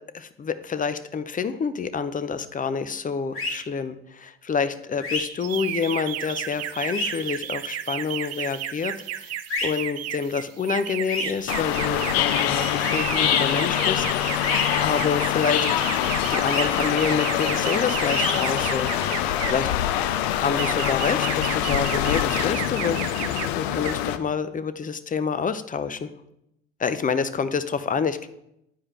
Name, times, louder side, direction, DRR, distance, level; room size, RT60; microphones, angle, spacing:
voice 1, 0.1-9.3 9.6-14.5 14.8-15.7 16.3-18.9 19.5-19.7 20.3-23.3 23.5-26.1 26.8-28.3, left 6 dB, 25° left, 12 dB, 0.6 m, -28 dB
sound 1, 3.3-3.5 5.0-5.2 6.8-7.1 9.5-9.7 11.1-11.3 12.8-13.0 14.4-14.7 16.4-16.6 18.0-18.3, left 2 dB, 45° left, 2.1 m, -27 dB
sound 2, 5.4-19.7 20.3-23.5 23.8-24.1, right 12 dB, 55° right, 0.5 m, -33 dB
sound 3, 11.5-24.2, left 11 dB, 85° left, 0.5 m, -24 dB
9.2 x 4.9 x 4.3 m, 0.81 s
hypercardioid pair, 65°, 31 cm